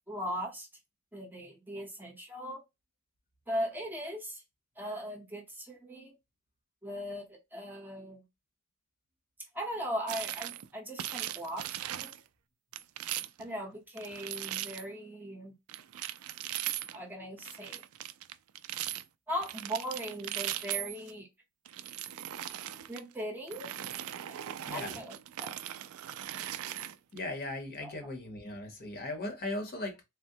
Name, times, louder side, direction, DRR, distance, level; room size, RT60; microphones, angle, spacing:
voice 1, 0.1-0.7 1.1-2.6 3.5-4.4 4.8-6.1 6.8-8.2 9.5-12.1 13.4-15.5 16.9-17.8 19.3-21.3 22.9-23.7 24.7-25.6 27.8-27.9, equal, 10° right, 0.8 m, -39 dB
sound 1, 10.1-10.7 11.0-12.2 12.7-13.5 14.0-14.9 15.7-17.0 17.4-19.0 19.4-21.1 21.7-23.0 23.5-27.2, right 12 dB, 70° right, 0.3 m, -39 dB
voice 2, 24.7-25.0 27.1-30.0, left 2 dB, 45° left, 0.9 m, -38 dB
3.5 x 2.1 x 2.7 m
head